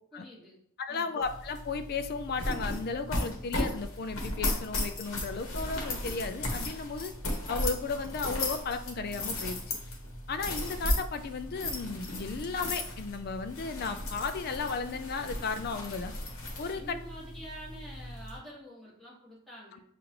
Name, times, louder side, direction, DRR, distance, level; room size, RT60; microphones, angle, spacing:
voice 1, 0.1-0.6 0.9-1.1 16.7-19.8, equal, ahead, -8 dB, 1.6 m, -47 dB
voice 2, 0.8-7.1 7.5-9.6 10.3-16.1 16.6-17.0, left 4 dB, 45° left, 9 dB, 0.3 m, -34 dB
sound 1, 1.2-18.4, left 1 dB, 60° left, 1.1 m, -36 dB
6.9 x 2.5 x 2.9 m, 0.71 s
head